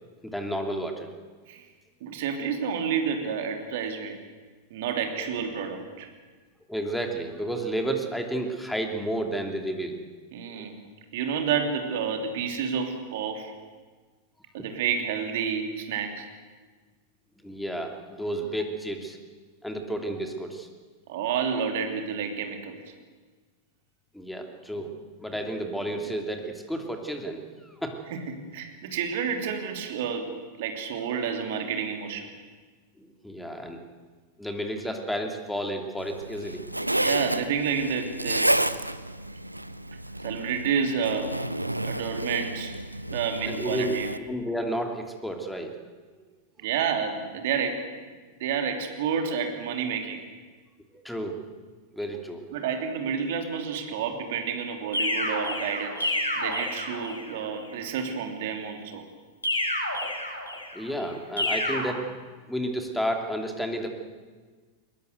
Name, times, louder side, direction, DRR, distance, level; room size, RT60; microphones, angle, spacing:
voice 1, 0.2-1.1 6.7-10.0 10.6-10.7 17.4-19.2 19.6-20.7 24.1-28.0 33.0-33.8 34.4-36.6 43.4-45.7 46.1-46.2 50.9-51.4 51.9-52.5 60.7-62.1 62.5-63.9, right 1 dB, 5° left, 4 dB, 2.9 m, -31 dB
voice 2, 2.0-4.1 4.7-6.1 10.3-10.8 11.1-13.5 14.5-16.2 21.1-22.8 28.1-30.3 30.6-32.3 37.0-38.5 40.2-41.3 41.8-42.7 43.1-44.1 46.6-47.8 48.4-50.2 52.5-59.0, right 6 dB, 55° right, 5 dB, 3.1 m, -30 dB
Zipper (clothing), 36.0-44.2, right 1 dB, 85° right, 0.7 m, -30 dB
sound 1, 54.9-57.4 59.4-60.8 61.4-61.8, left 1 dB, 80° left, 6.5 m, -29 dB
21.5 x 20.5 x 8.1 m, 1.4 s
figure-of-eight pair, 90°, 0 cm